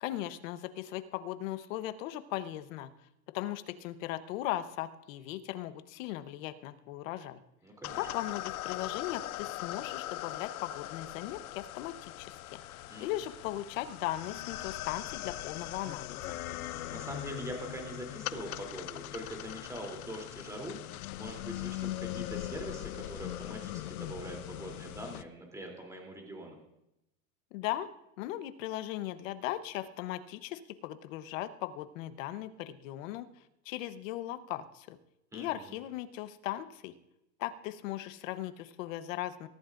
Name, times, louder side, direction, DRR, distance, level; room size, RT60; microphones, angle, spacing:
voice 1, 0.0-2.9 3.3-7.4 8.0-12.6 13.0-16.4 27.5-27.9 28.2-33.3 33.6-35.0 35.3-36.9 37.4-39.5, left 14 dB, 65° left, 11 dB, 1.1 m, -38 dB
voice 2, 7.6-8.0 12.9-13.1 16.9-26.6 35.3-35.8, right 1 dB, 5° right, 1 dB, 3.2 m, -43 dB
sound 1, 7.8-25.2, left 15 dB, 85° left, 0.7 m, -40 dB
22.0 x 14.5 x 2.6 m, 0.86 s
supercardioid pair, 135°, 43 cm